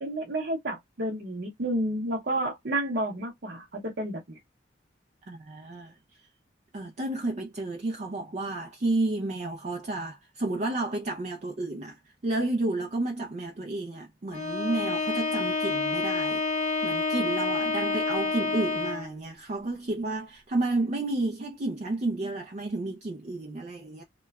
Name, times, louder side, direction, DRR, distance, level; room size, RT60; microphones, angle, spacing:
voice 1, 0.0-4.4, right 1 dB, 55° right, 0.8 m, -30 dB
voice 2, 5.3-6.0 6.7-16.4 16.8-24.0, right 2 dB, 40° right, 0.4 m, -31 dB
Bowed string instrument, 14.3-19.2, left 3 dB, 40° left, 0.7 m, -28 dB
2.9 x 2.2 x 2.3 m
head